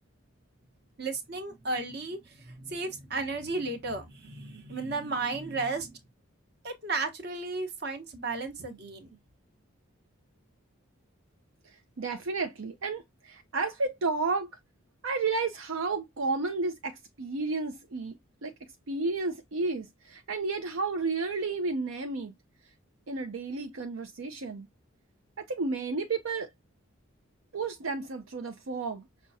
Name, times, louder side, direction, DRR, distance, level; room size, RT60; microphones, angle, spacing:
voice 1, 1.0-6.0 6.6-9.1, right 3 dB, 50° right, 1.1 m, -34 dB
voice 2, 11.6-14.5 15.0-22.3 23.1-24.7 25.4-26.5 27.5-29.1, right 3 dB, 75° right, 0.6 m, -32 dB
6.0 x 2.1 x 2.7 m
head